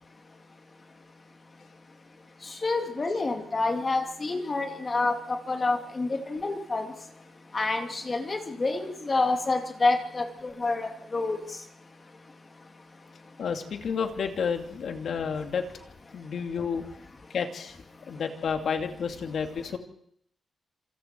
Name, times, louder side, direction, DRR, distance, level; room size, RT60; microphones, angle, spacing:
voice 1, 2.6-6.8 7.5-10.2 10.6-10.8 11.1-11.4, left 3 dB, 35° left, 4 dB, 2.7 m, -27 dB
voice 2, 13.4-15.6 16.1-16.8 17.3-17.8 18.1-19.8, left 6 dB, 70° left, 6 dB, 2.5 m, -30 dB
26.5 x 25.5 x 4.6 m, 0.69 s
cardioid pair, 110°, 0 cm